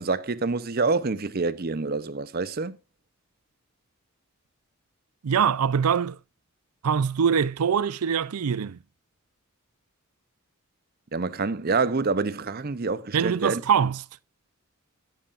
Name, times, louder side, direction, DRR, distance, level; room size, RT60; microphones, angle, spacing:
voice 1, 0.0-2.8 11.1-13.6, right 4 dB, 45° right, 0.6 m, -27 dB
voice 2, 5.2-6.2 6.8-8.8 13.1-14.0, right 7 dB, 90° right, 0.5 m, -23 dB
13.0 x 11.5 x 2.5 m
head